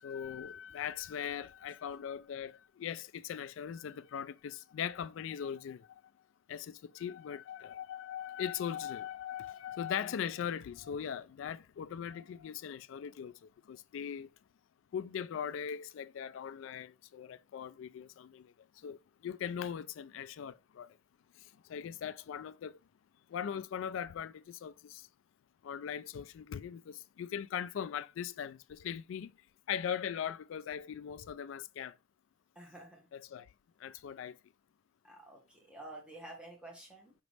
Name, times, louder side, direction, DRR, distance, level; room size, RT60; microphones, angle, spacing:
voice 1, 0.0-5.9 6.5-13.4 13.7-14.3 14.9-18.5 18.8-19.0 19.2-20.9 21.7-22.8 23.3-25.0 25.6-29.3 29.7-31.9 33.3-33.5 33.8-34.4, left 8 dB, 75° left, 0.3 m, -40 dB
voice 2, 32.5-33.1 33.9-34.0 35.0-37.1, right 1 dB, 5° right, 1.2 m, -50 dB
5.1 x 3.0 x 3.2 m
head